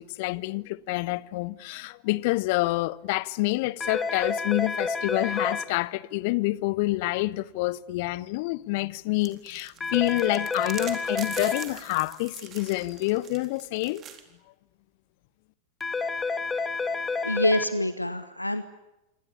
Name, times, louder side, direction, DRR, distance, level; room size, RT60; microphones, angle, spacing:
voice 1, 0.0-14.0, left 20 dB, 50° left, 0.9 m, -28 dB
sound 1, 3.8-5.6 9.8-11.6 15.8-17.6, left 4 dB, 15° left, 2.3 m, -29 dB
sound 2, 9.2-14.2, right 9 dB, 30° right, 4.0 m, -43 dB
voice 2, 17.2-18.6, left 1 dB, 85° left, 1.0 m, -26 dB
27.5 x 26.0 x 8.5 m
figure-of-eight pair, 90°, 0 cm